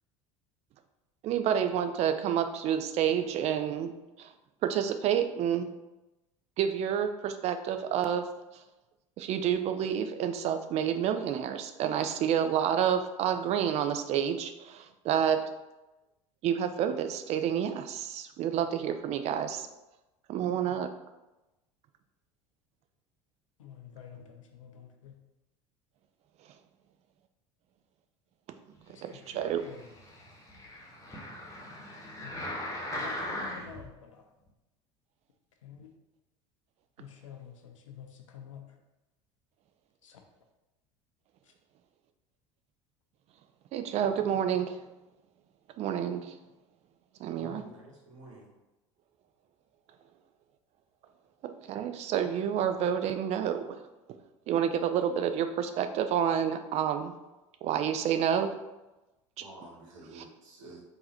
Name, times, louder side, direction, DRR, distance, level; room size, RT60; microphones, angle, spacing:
voice 1, 1.2-3.9 4.2-4.3 4.6-5.7 6.6-8.3 9.2-15.4 16.4-19.7 20.3-20.9 29.0-29.6 43.7-44.8 45.8-46.3 47.2-47.6 51.4-53.8 54.5-57.1 57.6-58.5 60.2-60.3, right 9 dB, 45° right, 8 dB, 0.4 m, -29 dB
voice 2, 23.6-25.1 29.1-30.0 32.2-32.4 33.0-34.3 35.6-35.9 37.0-38.6 40.0-40.2 41.4-41.5, left 8 dB, 80° left, 4 dB, 0.6 m, -49 dB
sound 1, 29.3-33.9 34.5-34.6, left 1 dB, 20° left, 1.1 m, -39 dB
voice 3, 47.3-48.5 59.4-60.8, right 2 dB, 75° right, -3 dB, 1.3 m, -49 dB
3.8 x 2.6 x 4.3 m, 1.0 s
hypercardioid pair, 70°, 16 cm